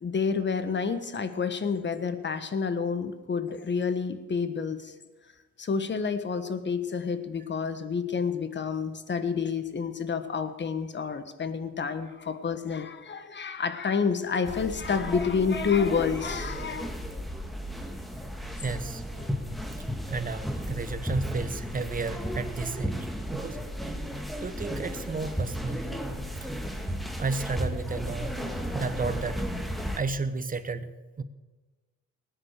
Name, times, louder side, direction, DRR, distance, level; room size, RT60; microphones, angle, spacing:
voice 1, 0.0-4.9 5.6-16.9 19.2-19.3, left 5 dB, 40° left, 10 dB, 1.4 m, -29 dB
sound 1, 14.4-30.0, equal, ahead, 1.7 m, -34 dB
voice 2, 18.6-19.0 20.1-23.9 24.4-26.0 26.4-26.5 27.2-28.5 28.7-29.5 30.0-31.2, right 4 dB, 30° right, 12 dB, 1.1 m, -33 dB
19.0 x 9.8 x 6.7 m, 1.2 s
cardioid pair, 105°, 29 cm